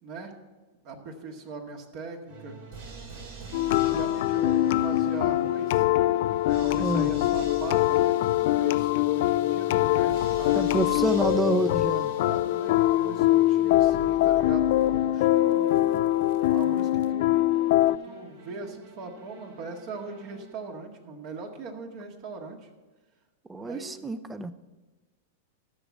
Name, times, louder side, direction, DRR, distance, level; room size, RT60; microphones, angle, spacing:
voice 1, 0.0-0.4 0.8-2.6 3.7-5.8 6.4-11.5 12.2-16.2 16.5-17.4 17.9-22.7 23.6-23.9, right 4 dB, 55° right, 2 dB, 1.9 m, -40 dB
sound 1, 2.3-20.8, right 3 dB, 70° right, 3.2 m, -45 dB
sound 2, 3.5-18.0, left 15 dB, 60° left, 0.3 m, -23 dB
voice 2, 10.5-12.1 23.5-24.5, right 2 dB, 15° right, 13 dB, 0.7 m, -28 dB
14.0 x 6.0 x 6.4 m, 1.2 s
hypercardioid pair, 105°, 0 cm